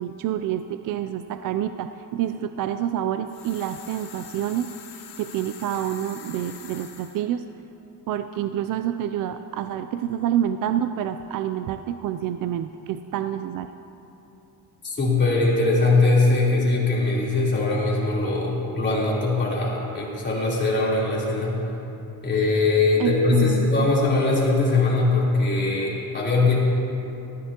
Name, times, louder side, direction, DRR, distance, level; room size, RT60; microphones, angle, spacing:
voice 1, 0.0-4.7 5.2-7.4 8.1-13.7 23.0-23.9, right 10 dB, 55° right, 10 dB, 0.5 m, -28 dB
sound 1, 3.3-7.2, left 8 dB, 85° left, 1.7 m, -44 dB
voice 2, 14.8-21.5 22.2-26.6, left 3 dB, 25° left, -6 dB, 3.6 m, -21 dB
19.5 x 14.5 x 2.9 m, 2.9 s
cardioid pair, 135°, 41 cm